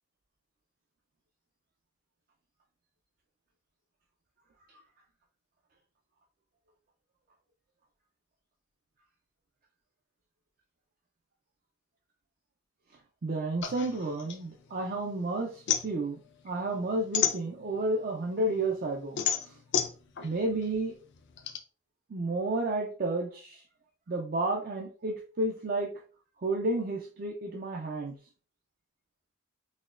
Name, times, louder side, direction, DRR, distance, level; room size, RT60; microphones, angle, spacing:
voice 1, 13.2-16.2 16.4-19.6 20.2-20.9 22.1-23.6 24.1-25.9 26.4-28.2, right 2 dB, 40° right, 0 dB, 0.4 m, -31 dB
sound 1, 13.6-15.1 15.4-18.0 18.4-21.6, left 9 dB, 55° left, 0.4 m, -31 dB
4.1 x 2.9 x 2.4 m, 0.39 s
head